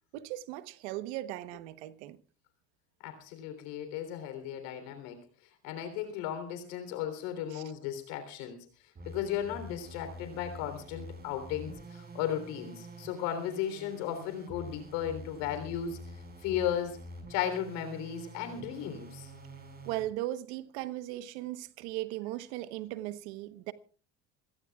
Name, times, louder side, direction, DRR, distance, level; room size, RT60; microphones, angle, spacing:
voice 1, 0.1-2.2 7.5-7.6 19.8-23.7, right 15 dB, 85° right, 1.2 m, -38 dB
voice 2, 3.0-5.2 5.6-8.7 9.1-16.0 16.4-17.0 17.3-19.3, left 10 dB, 85° left, 3.7 m, -35 dB
sound 1, 8.9-20.1, equal, 30° right, 5.4 m, -47 dB
26.5 x 17.5 x 2.4 m
supercardioid pair, 95°, 32 cm